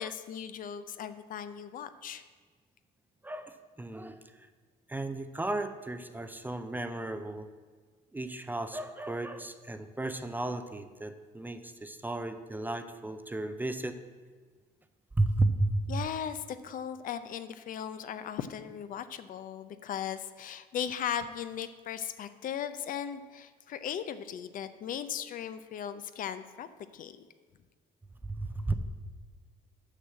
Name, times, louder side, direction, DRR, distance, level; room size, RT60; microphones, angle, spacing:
voice 1, 0.0-2.2 15.9-26.7 26.9-27.2, left 9 dB, 55° left, 12 dB, 0.5 m, -37 dB
voice 2, 3.2-4.5 4.9-7.5 8.1-14.0 15.2-16.0 28.2-28.7, right 2 dB, 10° right, 9 dB, 0.5 m, -33 dB
6.5 x 6.2 x 7.5 m, 1.5 s
cardioid pair, 110°, 17 cm